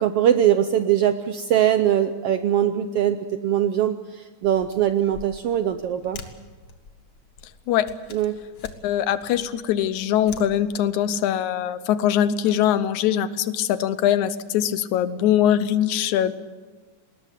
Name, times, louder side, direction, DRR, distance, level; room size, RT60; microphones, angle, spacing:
voice 1, 0.0-6.2 8.1-8.4, right 10 dB, 75° right, 9 dB, 1.4 m, -21 dB
sound 1, 4.4-11.1, left 4 dB, 40° left, 1.8 m, -46 dB
voice 2, 8.8-16.3, left 10 dB, 75° left, 14 dB, 2.2 m, -22 dB
20.0 x 19.0 x 8.4 m, 1.3 s
omnidirectional pair, 3.5 m